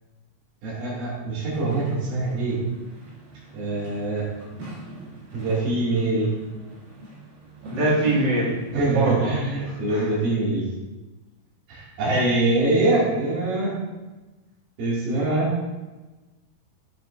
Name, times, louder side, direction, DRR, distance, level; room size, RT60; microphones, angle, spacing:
voice 1, 0.6-2.6 3.5-4.3 5.3-6.3 8.7-10.7 11.7-13.7 14.8-15.6, right 2 dB, 90° right, -6 dB, 4.2 m, -24 dB
sound 1, 1.5-9.2, right 1 dB, 65° right, 3.8 m, -41 dB
voice 2, 7.6-9.4 9.6-10.1, right 1 dB, 35° right, -7 dB, 2.4 m, -24 dB
10.0 x 8.5 x 2.6 m, 1.2 s
omnidirectional pair, 4.2 m